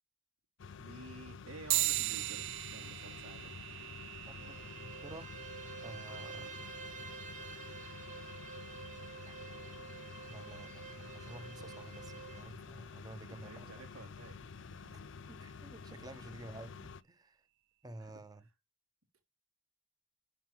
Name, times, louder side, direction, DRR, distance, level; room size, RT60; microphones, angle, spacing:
sound 1, 0.6-17.0, left 5 dB, 60° left, 0.5 m, -50 dB
voice 1, 0.8-3.6 6.0-6.3 13.3-14.4 14.7-15.1 18.0-18.2, right 2 dB, 90° right, 3.4 m, -52 dB
sound 2, 1.7-11.5, right 17 dB, 60° right, 0.5 m, -41 dB
Bowed string instrument, 4.2-12.5, right 5 dB, 35° right, 1.8 m, -49 dB
voice 2, 4.3-5.4 5.8-6.6 9.3-9.4 10.3-13.8 15.3-17.5 17.8-18.4, right 1 dB, 20° right, 0.8 m, -51 dB
11.5 x 4.6 x 3.0 m
head